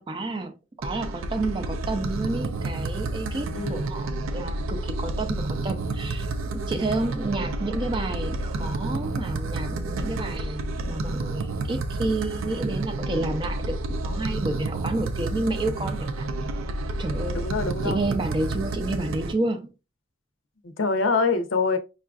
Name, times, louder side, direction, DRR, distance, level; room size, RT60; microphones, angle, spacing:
voice 1, 0.0-6.3 6.7-16.3 17.0-17.4 17.8-19.7, right 2 dB, 25° right, 0.4 m, -30 dB
sound 1, 0.8-19.3, right 2 dB, 85° right, 0.4 m, -30 dB
voice 2, 3.5-3.9 17.3-18.0 20.8-21.8, left 4 dB, 75° left, 0.6 m, -25 dB
5.4 x 2.4 x 2.3 m
head